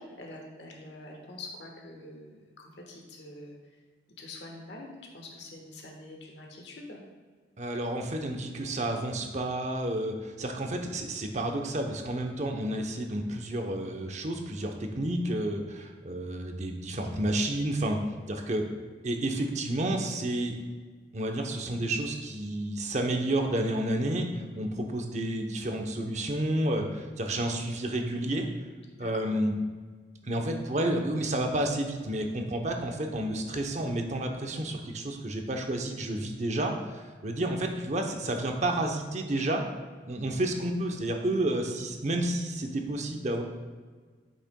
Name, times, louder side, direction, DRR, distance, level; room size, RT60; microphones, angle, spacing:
voice 1, 0.0-3.8 4.2-7.0 28.9-29.3 39.3-39.5, left 2 dB, 70° left, 0 dB, 1.3 m, -45 dB
voice 2, 7.6-18.0 18.3-18.7 19.0-20.5 21.1-28.5 29.0-29.5 30.2-39.6 40.0-43.4, right 1 dB, 40° right, 3 dB, 0.8 m, -30 dB
8.4 x 6.4 x 2.2 m, 1.5 s
head